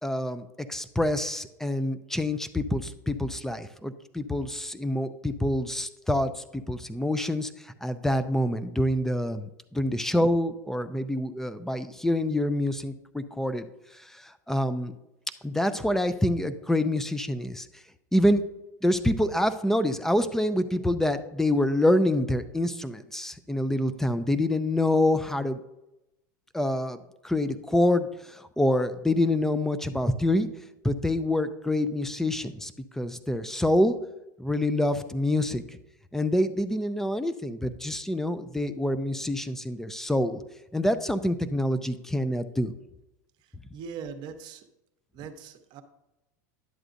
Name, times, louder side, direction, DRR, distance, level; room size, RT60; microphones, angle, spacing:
voice 1, 0.0-14.9 15.4-17.7 18.1-18.4 18.8-25.6 26.5-27.0 27.2-30.5 30.8-34.0 34.4-35.6 36.1-40.4 40.7-42.7, left 1 dB, 5° left, 12 dB, 0.5 m, -26 dB
voice 2, 43.7-44.7 45.1-45.8, right 6 dB, 50° right, 8 dB, 0.9 m, -40 dB
11.0 x 7.9 x 2.6 m, 0.92 s
hypercardioid pair, 105°, 10 cm